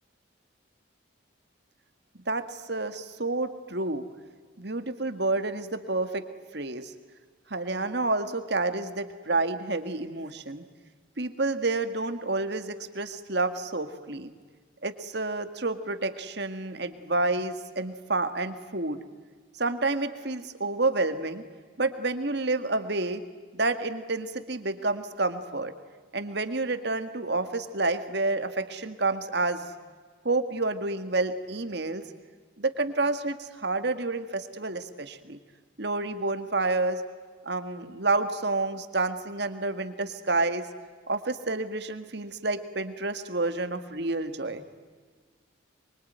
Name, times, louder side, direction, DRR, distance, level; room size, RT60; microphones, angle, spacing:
voice 1, 2.3-4.1 4.6-6.3 6.5-6.9 7.5-10.6 11.2-14.3 14.8-19.0 19.6-21.4 21.8-23.2 23.5-25.7 26.1-29.7 30.2-32.1 32.6-35.4 35.8-37.0 37.4-40.7 41.1-44.6, right 2 dB, 55° right, 9 dB, 1.9 m, -29 dB
24.5 x 24.5 x 9.5 m, 1.5 s
head